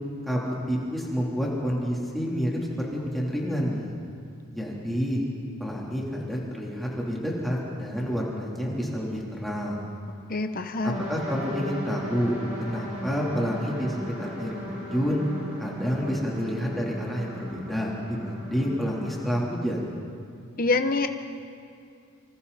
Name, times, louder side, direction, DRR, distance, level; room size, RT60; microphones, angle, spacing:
voice 1, 0.3-3.9 4.5-5.3 5.6-9.8 10.8-15.2 15.6-19.9, equal, ahead, -5 dB, 3.5 m, -29 dB
voice 2, 10.3-11.0 20.6-21.1, left 3 dB, 45° left, 7 dB, 0.9 m, -25 dB
sound 1, 10.9-19.3, equal, 35° right, 6.3 m, -37 dB
27.0 x 26.0 x 4.3 m, 2.4 s
head